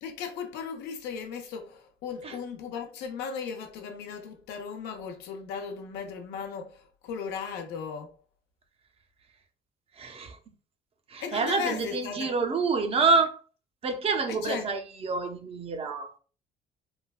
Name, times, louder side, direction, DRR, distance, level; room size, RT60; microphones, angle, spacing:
voice 1, 0.0-8.2 11.2-12.3 14.3-14.7, left 6 dB, 80° left, 0.6 m, -36 dB
voice 2, 10.0-10.4 11.1-13.4 13.8-16.1, right 4 dB, 35° right, 0.5 m, -27 dB
3.1 x 2.2 x 2.3 m
cardioid pair, 110°, 17 cm